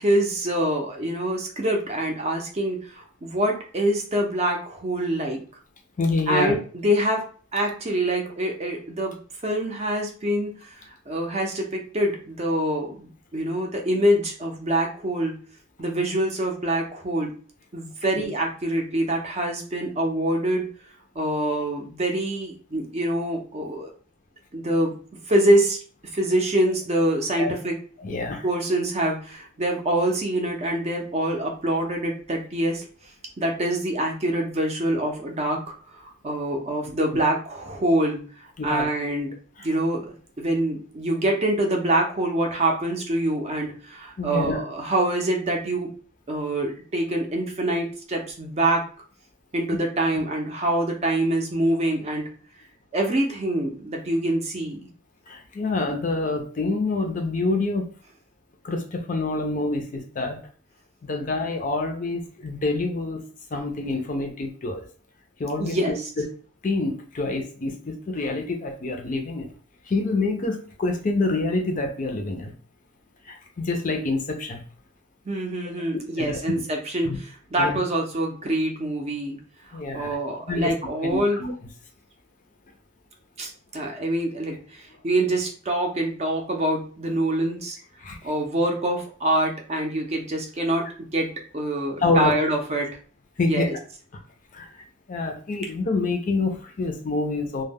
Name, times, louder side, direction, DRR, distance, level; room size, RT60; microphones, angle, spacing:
voice 1, 0.0-5.4 6.3-7.2 7.5-10.8 11.1-15.3 15.8-17.3 17.7-20.6 21.2-23.9 24.5-24.9 25.3-25.8 26.1-27.8 28.4-32.9 33.4-35.6 35.9-38.2 38.6-39.3 39.6-40.1 40.4-45.9 46.3-48.8 49.5-52.2 52.9-54.8 65.6-65.9 75.3-77.1 77.5-79.4 79.7-81.4 83.4-87.8 88.2-90.9 91.1-91.3 91.5-92.9 93.4-93.8, right 1 dB, 30° right, 1 dB, 0.5 m, -25 dB
voice 2, 6.0-6.6 18.2-18.3 27.4-27.5 28.0-28.4 38.6-38.9 44.2-44.6 55.3-57.9 58.6-60.4 61.0-63.2 63.5-64.9 65.4-66.3 66.6-69.5 69.9-72.5 73.3-74.6 76.2-76.4 77.0-77.2 77.6-77.8 79.7-80.2 80.5-80.7 81.0-81.5 88.0-88.2 92.0-92.3 93.4-93.7 94.5-94.7 95.1-97.6, left 3 dB, 40° left, 4 dB, 0.4 m, -26 dB
2.2 x 2.1 x 3.3 m, 0.41 s
head